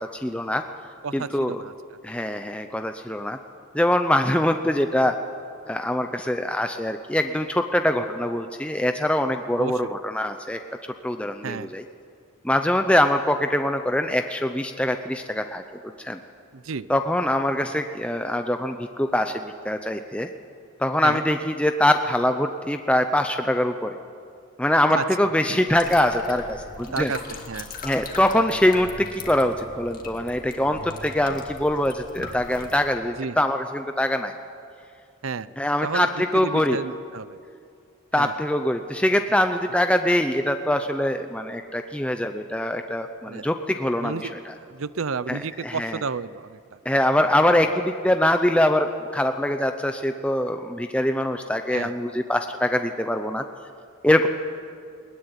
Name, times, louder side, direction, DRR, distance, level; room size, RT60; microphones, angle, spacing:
voice 1, 0.1-0.6 1.1-1.6 2.0-3.4 3.7-5.1 5.7-10.6 11.0-11.8 12.4-15.6 16.0-16.2 16.9-20.3 20.8-24.0 24.6-27.1 27.8-34.3 35.6-36.8 38.1-44.5 45.3-46.0 46.8-53.4 54.0-54.3, left 1 dB, 5° left, 6 dB, 0.6 m, -23 dB
voice 2, 1.0-1.7 9.6-9.9 11.4-11.7 16.5-16.9 21.0-21.2 24.9-25.0 25.5-25.6 26.9-27.7 33.2-33.4 35.2-35.5 35.8-36.1 36.3-37.4 38.2-38.3 43.3-43.5 44.0-46.8 51.7-51.9, right 5 dB, 75° right, 17 dB, 0.6 m, -31 dB
sound 1, 25.7-32.8, left 3 dB, 40° left, 2.1 m, -39 dB
21.0 x 19.5 x 9.9 m, 2.4 s
head